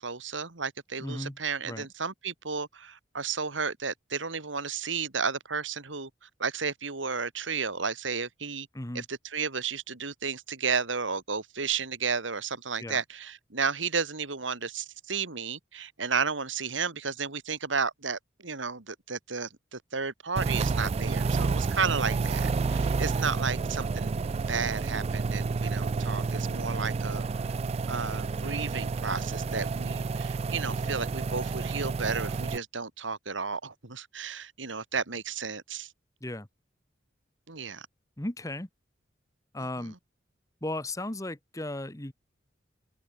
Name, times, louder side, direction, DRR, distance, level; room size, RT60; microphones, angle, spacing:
voice 1, 0.0-6.1 6.4-8.7 8.9-24.2 24.5-27.3 27.9-35.9 37.5-37.9, right 5 dB, 85° right, 2.3 m, -33 dB
voice 2, 1.0-1.4 1.6-1.9 8.7-9.0 12.8-13.0 36.2-36.5 38.2-38.7 39.5-39.9 40.6-42.1, left 1 dB, 15° left, 1.4 m, -35 dB
sound 1, 20.4-32.6, right 4 dB, 35° right, 0.3 m, -30 dB
open air
head